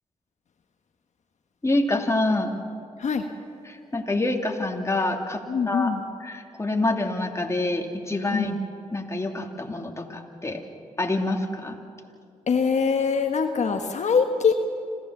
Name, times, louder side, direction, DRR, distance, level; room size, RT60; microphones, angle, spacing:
voice 1, 1.6-2.5 3.6-5.9 6.2-8.5 8.9-10.6 11.0-11.8, left 2 dB, 20° left, 2 dB, 2.7 m, -26 dB
voice 2, 5.5-6.0 8.3-8.5 12.5-14.5, left 5 dB, 65° left, 5 dB, 1.3 m, -23 dB
26.0 x 15.5 x 7.3 m, 2.4 s
cardioid pair, 60°, 13 cm